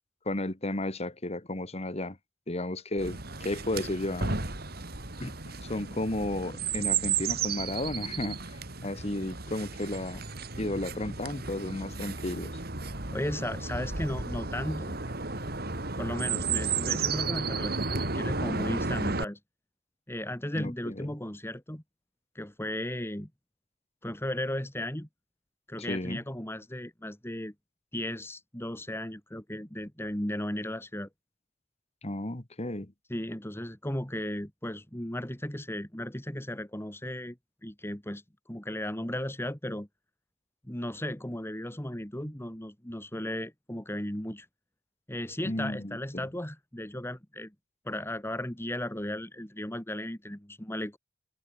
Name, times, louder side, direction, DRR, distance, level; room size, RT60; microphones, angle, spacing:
voice 1, 0.3-2.2 2.5-4.4 5.2-5.3 5.6-8.4 8.8-10.2 10.6-12.5 20.5-21.1 25.9-26.2 32.0-32.9 45.4-46.3, left 1 dB, 35° left, 2.0 m, -33 dB
Chirp tweet, 3.0-19.2, right 4 dB, 60° right, 4.0 m, -33 dB
voice 2, 13.1-15.0 16.0-19.4 20.1-21.8 22.4-23.3 24.0-25.1 25.7-27.5 27.9-31.1 33.1-38.2 38.5-39.9 40.6-44.5 45.1-47.5 47.8-51.0, left 1 dB, 15° left, 2.3 m, -35 dB
open air
head